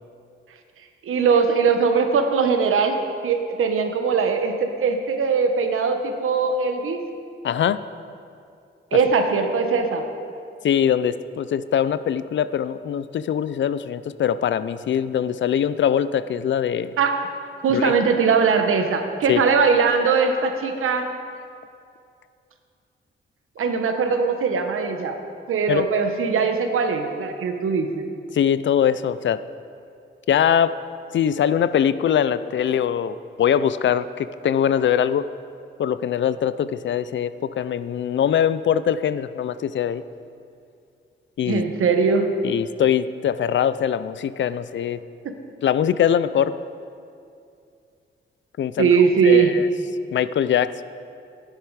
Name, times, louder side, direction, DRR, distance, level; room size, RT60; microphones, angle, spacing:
voice 1, 1.0-7.0 8.9-10.1 17.0-17.2 17.6-21.1 23.6-25.2 25.5-28.1 41.5-42.3 45.2-45.3 48.8-49.5, right 5 dB, 90° right, 6 dB, 1.2 m, -20 dB
voice 2, 7.4-7.8 10.6-16.9 17.7-17.9 19.3-19.4 25.7-25.8 28.3-29.4 30.3-30.7 31.1-35.3 35.8-40.0 41.4-41.6 42.4-45.0 45.6-46.5 48.6-48.9 49.2-49.7 50.1-50.8, left 9 dB, 65° left, 14 dB, 0.5 m, -22 dB
14.5 x 10.5 x 4.8 m, 2.5 s
wide cardioid pair, 130°, 21 cm